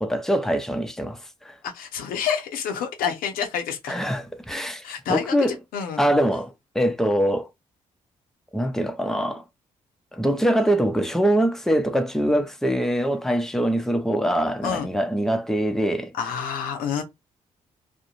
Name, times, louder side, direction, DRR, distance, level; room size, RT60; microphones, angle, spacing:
voice 1, 0.0-1.6 3.9-4.8 5.1-5.5 6.0-7.5 8.5-9.4 10.1-16.1, equal, 5° left, 0.6 m, -23 dB
voice 2, 1.6-3.9 4.8-6.0 14.6-14.9 16.1-17.0, left 7 dB, 80° left, 0.5 m, -28 dB
2.4 x 2.0 x 2.8 m
supercardioid pair, 55°, 15 cm